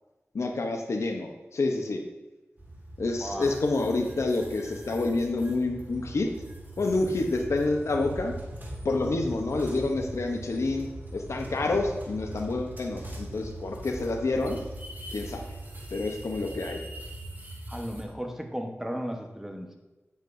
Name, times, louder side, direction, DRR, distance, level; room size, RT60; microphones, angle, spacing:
voice 1, 0.3-2.0 3.0-6.3 6.8-8.3 8.8-14.6 15.1-15.4 15.9-16.8, left 2 dB, 85° left, 3 dB, 0.9 m, -28 dB
sound 1, 2.6-18.0, right 1 dB, 40° right, 1.8 m, -41 dB
voice 2, 3.2-3.5 17.7-19.7, equal, 10° right, 3 dB, 1.1 m, -35 dB
9.0 x 8.1 x 2.7 m, 1.1 s
wide cardioid pair, 60°, 5 cm